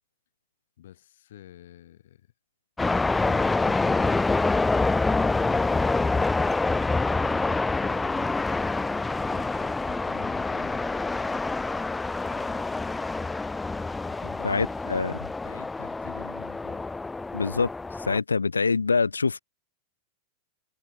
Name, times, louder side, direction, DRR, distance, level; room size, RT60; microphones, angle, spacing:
voice 1, 0.8-2.3 7.1-8.8 9.3-10.8 14.0-15.1 15.4-17.0, left 12 dB, 60° left, 7.5 m, -49 dB
sound 1, 2.8-18.2, left 3 dB, 10° left, 0.6 m, -26 dB
voice 2, 14.4-15.1 17.3-17.7 18.1-19.4, left 4 dB, 75° left, 0.4 m, -24 dB
figure-of-eight pair, 90°, 0 cm